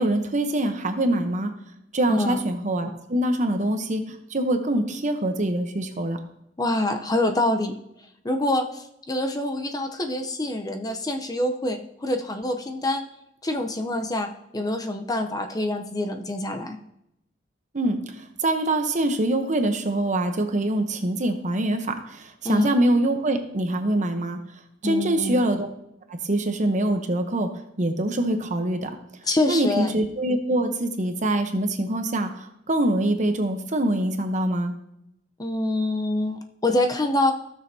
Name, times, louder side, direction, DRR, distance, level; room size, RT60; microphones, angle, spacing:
voice 1, 0.0-1.5 1.9-6.2 17.7-24.4 24.8-25.7 26.1-27.5 27.8-28.9 29.5-34.8, right 1 dB, 40° right, 6 dB, 0.9 m, -24 dB
voice 2, 6.6-7.7 8.2-13.1 13.4-16.8 22.4-22.7 24.8-25.4 29.3-29.9 35.4-37.3, left 1 dB, 20° left, 5 dB, 0.7 m, -26 dB
15.5 x 6.6 x 2.8 m, 0.80 s
head